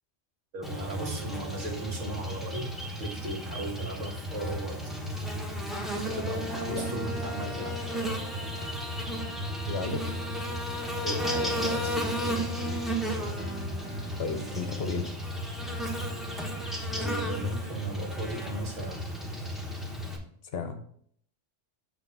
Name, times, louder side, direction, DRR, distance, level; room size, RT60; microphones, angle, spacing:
voice 1, 0.5-2.7 3.0-4.9 6.0-7.8 11.0-12.5 16.9-19.1, right 2 dB, 80° right, 0 dB, 1.8 m, -37 dB
Buzz, 0.6-20.2, equal, ahead, 0.9 m, -33 dB
sound 1, 5.9-14.8, right 2 dB, 15° right, 0.4 m, -44 dB
voice 2, 6.7-7.2 9.7-10.1 14.2-15.1 20.4-20.8, left 4 dB, 60° left, 7 dB, 1.0 m, -34 dB
7.4 x 3.4 x 5.4 m, 0.63 s
omnidirectional pair, 1.3 m